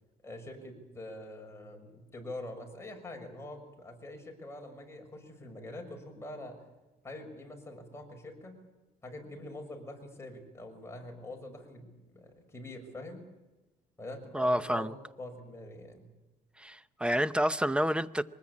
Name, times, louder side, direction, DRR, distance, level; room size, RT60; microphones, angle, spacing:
voice 1, 0.2-6.6 7.0-8.6 9.0-13.3 14.0-16.1, left 1 dB, 15° left, 6.6 m, -45 dB
voice 2, 14.3-14.9 16.6-18.2, equal, 5° right, 0.7 m, -29 dB
23.5 x 20.0 x 8.5 m
cardioid pair, 110°, 17 cm